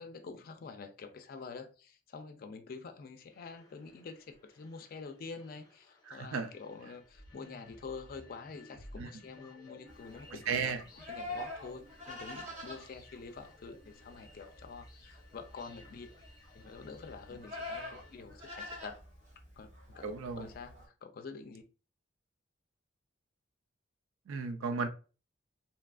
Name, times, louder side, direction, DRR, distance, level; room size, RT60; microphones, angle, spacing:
voice 1, 0.0-16.1 16.5-18.9 19.6-20.1 20.4-20.7 21.0-21.6, left 4 dB, 45° left, 0.3 m, -47 dB
sound 1, 3.2-18.2, left 2 dB, 20° left, 0.6 m, -57 dB
voice 2, 6.1-6.5 9.0-9.1 10.5-10.8 20.0-20.5 24.3-24.9, right 5 dB, 85° right, 0.4 m, -34 dB
Livestock farm animals working animals, 9.9-20.9, left 1 dB, 35° right, 0.7 m, -46 dB
2.8 x 2.3 x 2.3 m
head